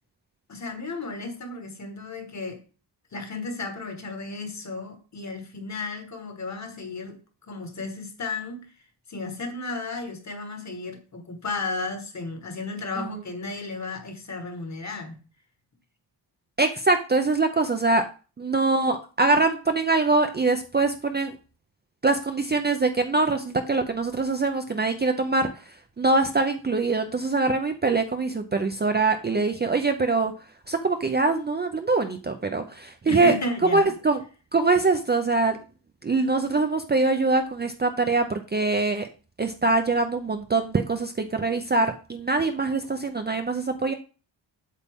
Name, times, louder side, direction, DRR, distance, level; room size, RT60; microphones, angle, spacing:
voice 1, 0.5-2.6 3.1-7.2 7.5-8.7 9.1-15.1 33.1-33.9, left 3 dB, 40° left, 1.5 m, -33 dB
voice 2, 16.6-18.0 18.4-21.3 22.0-30.3 30.7-33.3 33.7-34.2 34.5-35.6 36.0-39.1 39.4-43.9, right 3 dB, 25° right, 0.5 m, -23 dB
8.3 x 7.3 x 3.6 m
wide cardioid pair, 170°, 45 cm